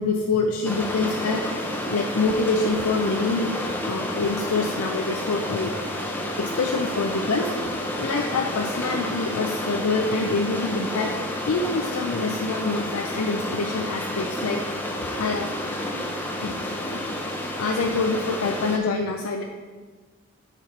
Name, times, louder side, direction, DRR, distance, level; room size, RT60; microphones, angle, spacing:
voice 1, 0.0-1.4 1.9-3.5 3.9-5.7 6.4-7.5 8.0-11.1 11.5-14.6 15.0-15.6 16.4-17.0 17.6-19.4, left 3 dB, 90° left, 2 dB, 0.5 m, -26 dB
sound 1, 0.6-18.8, left 1 dB, 10° left, 0.5 m, -30 dB
7.1 x 4.0 x 4.4 m, 1.4 s
head